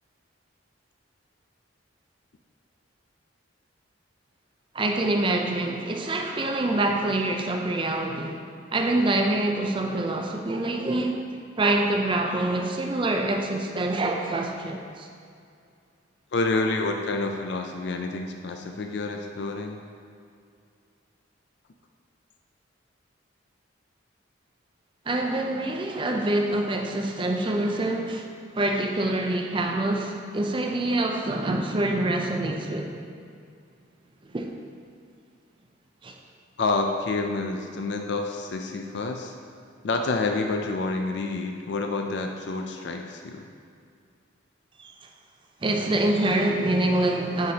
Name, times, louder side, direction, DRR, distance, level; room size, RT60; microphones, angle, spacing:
voice 1, 4.7-8.4 8.7-11.2 11.6-15.1 25.1-28.3 28.5-33.0 34.3-34.5 36.0-36.1 44.8-44.9 45.6-47.5, right 2 dB, 25° right, 3 dB, 0.5 m, -25 dB
voice 2, 16.3-19.8 36.6-39.3 39.8-43.4, left 3 dB, 60° left, 4 dB, 0.4 m, -28 dB
9.4 x 4.8 x 2.9 m, 2.4 s
head